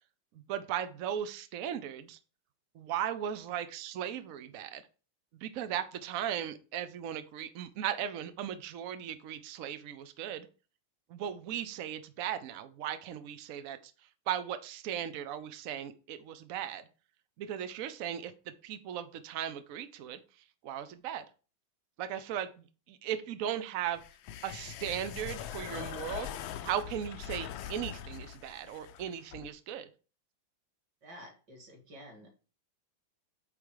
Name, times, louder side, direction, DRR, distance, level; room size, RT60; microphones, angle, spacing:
voice 1, 0.5-2.2 2.7-4.8 5.4-10.5 11.1-13.9 14.3-16.8 17.4-18.3 18.6-20.2 20.6-21.2 22.0-24.0 24.4-26.3 26.6-29.9, right 10 dB, 85° right, 10 dB, 0.7 m, -37 dB
sound 1, 23.9-29.5, left 10 dB, 75° left, 1.3 m, -42 dB
voice 2, 31.0-32.3, equal, 50° right, 2 dB, 2.5 m, -50 dB
8.8 x 3.5 x 4.8 m, 0.35 s
omnidirectional pair, 2.3 m